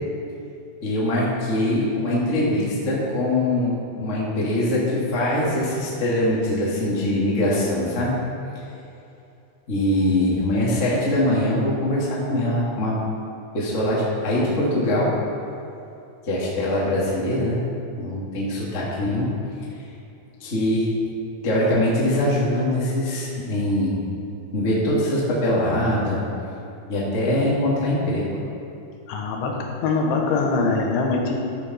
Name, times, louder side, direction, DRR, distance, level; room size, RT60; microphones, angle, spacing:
voice 1, 0.8-8.1 9.7-13.0 13.5-15.1 16.3-17.6 17.9-19.3 20.4-20.9 21.4-24.0 24.5-26.2 26.9-28.2, left 1 dB, 50° left, -6 dB, 0.9 m, -22 dB
voice 2, 29.1-29.5 29.8-31.4, left 3 dB, 80° left, 1 dB, 3.4 m, -22 dB
14.0 x 6.9 x 4.3 m, 2.7 s
omnidirectional pair, 5.6 m